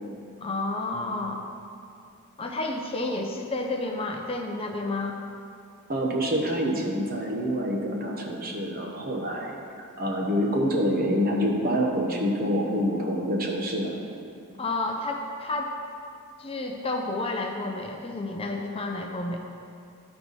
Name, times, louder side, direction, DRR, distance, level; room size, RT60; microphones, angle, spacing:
voice 1, 0.4-1.5 2.4-5.2 14.6-15.7 16.4-19.4, left 2 dB, 25° left, 2 dB, 0.5 m, -30 dB
voice 2, 5.9-9.5 9.9-14.0, equal, 40° right, 0 dB, 1.1 m, -26 dB
13.0 x 4.6 x 4.1 m, 2.5 s
head